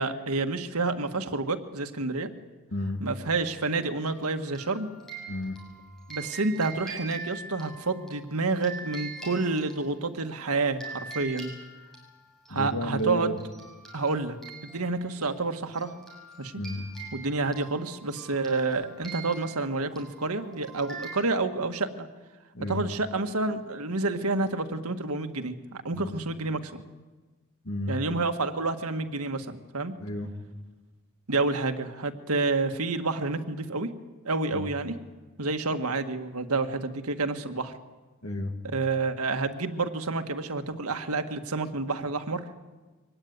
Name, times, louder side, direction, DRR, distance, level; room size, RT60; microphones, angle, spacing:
voice 1, 0.0-2.3 3.0-4.9 6.1-11.5 12.5-13.3 13.9-14.4 14.6-15.9 16.4-16.5 17.1-22.1 22.6-25.6 25.8-26.8 27.9-29.9 31.3-33.9 34.2-34.9 35.4-37.7 38.7-42.4, right 3 dB, 85° right, 7 dB, 1.7 m, -29 dB
voice 2, 2.7-3.0 5.3-5.6 12.5-13.4 16.6-16.9 22.5-22.8 25.9-26.1 27.6-28.0 30.0-30.3 34.5-34.7 38.2-38.5, equal, 70° left, 5 dB, 2.5 m, -32 dB
sound 1, 4.1-10.3 10.8-12.5 13.0-13.1 13.4-21.1, right 4 dB, ahead, 7.2 m, -44 dB
24.0 x 17.5 x 9.5 m, 1.2 s
head